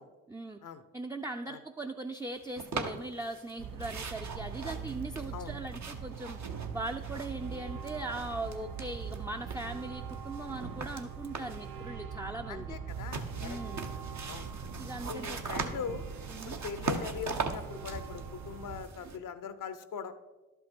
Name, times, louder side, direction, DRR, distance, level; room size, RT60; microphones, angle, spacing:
voice 1, 0.3-0.6 0.9-6.4 6.7-12.8 13.4-13.9 14.8-15.4 16.3-16.6, right 2 dB, 10° right, 3 dB, 0.5 m, -39 dB
sound 1, 2.6-3.5 3.8-7.5 7.8-9.2 9.5-11.7 12.9-19.2, right 4 dB, 55° right, 1.0 m, -40 dB
sound 2, 3.6-18.9, right 6 dB, 85° right, 0.7 m, -42 dB
voice 2, 12.5-13.6 14.3-14.5 15.0-16.0 16.4-20.1, left 7 dB, 70° left, 12 dB, 0.7 m, -41 dB
11.5 x 5.5 x 4.5 m, 1.2 s
supercardioid pair, 45°, 33 cm